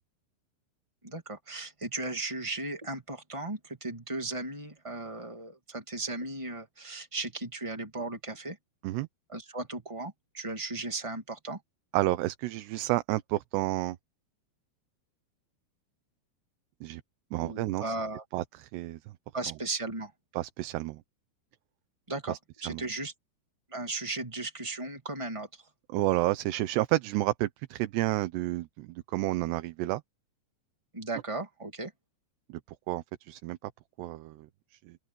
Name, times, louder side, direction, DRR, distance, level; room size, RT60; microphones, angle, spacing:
voice 1, 1.0-8.6 9.3-11.6 17.4-18.2 19.3-20.1 22.1-23.1 23.7-25.6 30.9-31.9, right 2 dB, 40° right, 0.4 m, -36 dB
voice 2, 11.9-14.0 16.8-17.0 17.3-17.9 18.3-19.0 20.4-21.0 22.3-22.4 22.7-22.8 25.9-30.0 32.5-32.6 32.9-33.6 34.0-34.5 34.9-35.0, right 17 dB, 75° right, 2.8 m, -30 dB
open air
omnidirectional pair, 5.2 m